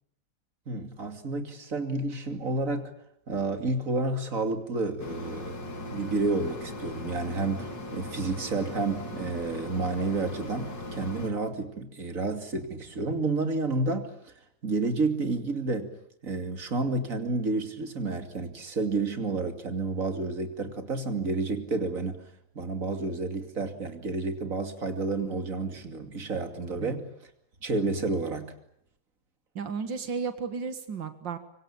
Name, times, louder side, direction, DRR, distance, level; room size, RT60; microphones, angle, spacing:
voice 1, 0.7-2.9 3.3-5.6 5.9-14.3 14.6-15.9 16.2-27.1 27.6-28.5, right 3 dB, 45° right, 6 dB, 3.1 m, -30 dB
Mechanisms, 5.0-11.3, left 1 dB, 80° left, 4.2 m, -39 dB
voice 2, 29.6-31.4, right 5 dB, 90° right, 9 dB, 2.4 m, -33 dB
25.0 x 25.0 x 8.8 m, 0.72 s
omnidirectional pair, 1.9 m